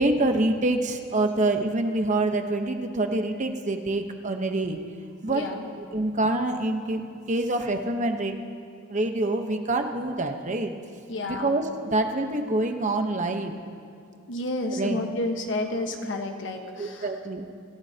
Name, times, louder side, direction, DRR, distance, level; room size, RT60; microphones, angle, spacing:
voice 1, 0.0-4.8 5.2-5.5 5.8-8.4 8.9-10.7 11.2-13.5 14.7-15.0 16.8-17.5, right 2 dB, 40° right, 5 dB, 1.0 m, -26 dB
voice 2, 5.3-5.7 11.1-11.5 14.3-17.1, left 1 dB, 70° left, 3 dB, 1.3 m, -30 dB
26.5 x 15.5 x 2.9 m, 2.3 s
head